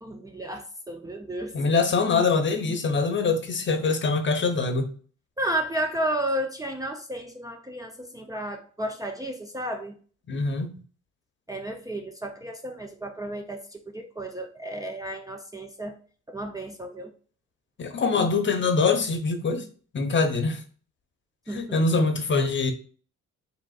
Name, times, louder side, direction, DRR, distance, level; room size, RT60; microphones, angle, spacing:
voice 1, 0.0-1.5 5.4-10.0 11.5-16.0 16.3-17.1 21.5-22.0, right 1 dB, 10° right, 0.5 m, -32 dB
voice 2, 1.5-4.9 10.3-10.7 17.8-19.7 19.9-20.6 21.5-22.7, left 4 dB, 40° left, 0.8 m, -24 dB
4.9 x 3.5 x 2.4 m
cardioid pair, 90°, 30 cm